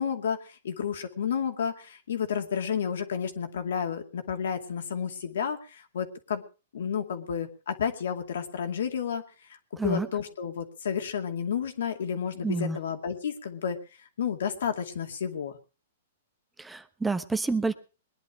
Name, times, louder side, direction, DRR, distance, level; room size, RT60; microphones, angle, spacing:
voice 1, 0.0-6.4 6.7-9.2 9.5-13.8 14.2-15.6, left 7 dB, 75° left, 6 dB, 2.4 m, -31 dB
voice 2, 9.8-10.1 12.4-12.8 16.6-17.7, right 3 dB, 5° right, 10 dB, 1.0 m, -28 dB
20.5 x 10.5 x 5.0 m, 0.35 s
hypercardioid pair, 135°, 0 cm